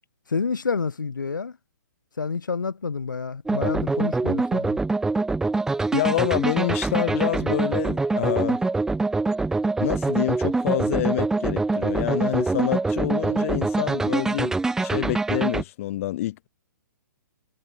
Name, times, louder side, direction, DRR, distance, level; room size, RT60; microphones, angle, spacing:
voice 1, 0.3-1.5 2.2-4.8, left 5 dB, 75° left, 1.2 m, -28 dB
sound 1, 3.5-15.6, right 3 dB, 5° right, 0.7 m, -24 dB
voice 2, 5.9-8.6 9.8-16.5, left 15 dB, 45° left, 1.5 m, -27 dB
figure-of-eight pair, 120°, 10 cm